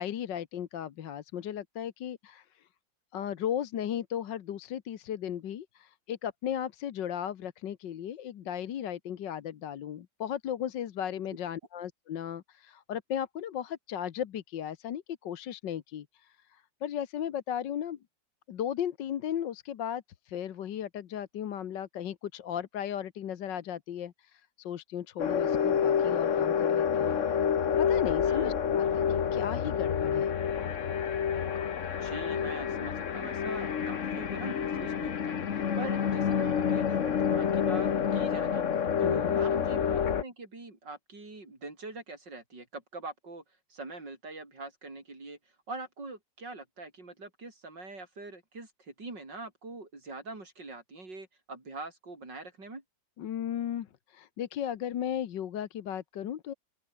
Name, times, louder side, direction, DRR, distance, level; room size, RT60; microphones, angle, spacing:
voice 1, 0.0-2.6 3.1-18.0 18.5-27.2 27.8-30.3 39.0-39.4 53.2-56.5, left 10 dB, 70° left, 1.7 m, -36 dB
sound 1, 25.2-40.2, left 8 dB, 45° left, 1.3 m, -28 dB
voice 2, 28.3-28.6 32.0-38.6 39.0-39.9 40.2-43.4 43.7-45.4 45.7-52.8, right 3 dB, 65° right, 6.4 m, -43 dB
open air
omnidirectional pair, 2.1 m